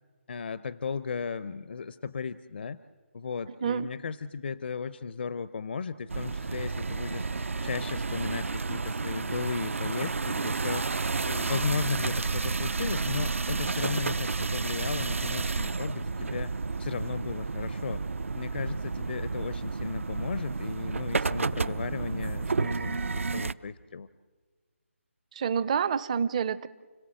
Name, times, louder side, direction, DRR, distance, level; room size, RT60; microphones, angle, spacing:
voice 1, 0.3-2.8 3.1-7.3 7.6-10.9 11.2-16.5 16.8-18.0 18.3-24.1, left 5 dB, 50° left, 16 dB, 0.6 m, -35 dB
sound 1, 6.1-23.5, right 4 dB, 75° right, 0.7 m, -31 dB
voice 2, 25.3-26.7, right 7 dB, 30° right, 17 dB, 0.6 m, -28 dB
30.0 x 17.5 x 7.7 m, 1.4 s
figure-of-eight pair, 155°, 7 cm